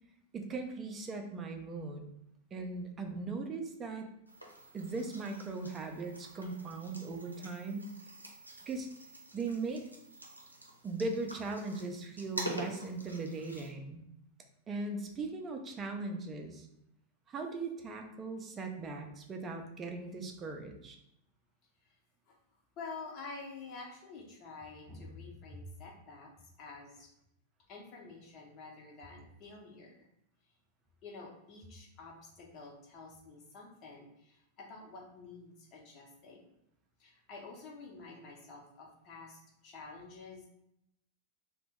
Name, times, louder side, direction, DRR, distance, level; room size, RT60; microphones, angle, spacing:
voice 1, 0.3-2.0 2.5-4.1 4.7-8.0 8.6-8.9 9.3-9.9 10.8-14.0 14.7-16.7 17.3-21.0 24.9-25.1, right 3 dB, 25° right, 4 dB, 0.5 m, -39 dB
sound 1, 4.3-13.7, right 1 dB, 90° right, 0.6 m, -47 dB
voice 2, 22.8-26.3 26.6-27.1 27.7-30.1 31.0-36.5 37.0-40.5, left 4 dB, 35° left, -1 dB, 0.9 m, -49 dB
2.9 x 2.2 x 3.4 m, 0.80 s
figure-of-eight pair, 90°, 0 cm